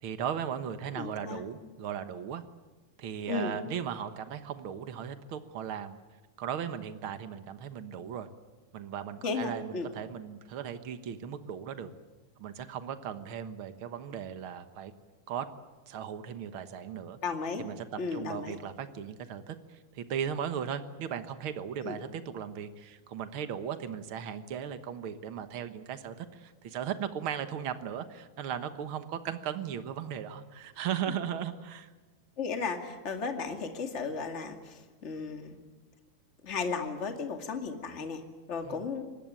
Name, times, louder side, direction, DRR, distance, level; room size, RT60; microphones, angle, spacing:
voice 1, 0.0-2.4 3.0-6.0 6.4-8.3 8.7-11.9 12.4-14.9 15.3-15.5 15.9-17.2 17.6-17.8 18.1-31.9 38.6-38.8, right 8 dB, 80° right, 10 dB, 1.2 m, -37 dB
voice 2, 1.0-1.4 3.3-3.6 9.2-9.9 17.2-17.7 18.0-18.6 21.8-22.0 32.4-35.6 36.4-38.2 38.5-39.1, left 4 dB, 25° left, 5 dB, 1.9 m, -35 dB
25.0 x 20.0 x 9.0 m, 1.3 s
omnidirectional pair, 4.3 m